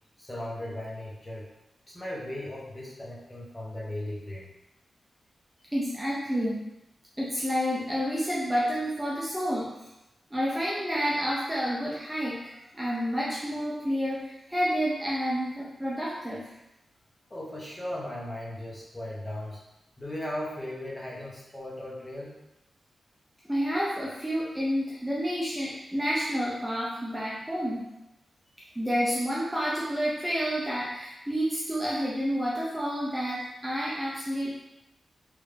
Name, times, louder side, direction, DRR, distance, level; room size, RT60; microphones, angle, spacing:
voice 1, 0.2-1.5 1.9-4.5 17.3-19.6 20.0-22.3, left 1 dB, 15° left, -5 dB, 0.8 m, -37 dB
voice 2, 5.7-6.6 7.2-9.9 10.3-16.5 23.5-27.9 28.8-34.5, equal, 10° right, -7 dB, 0.5 m, -29 dB
3.2 x 2.5 x 3.2 m, 0.92 s
wide cardioid pair, 145°, 0 cm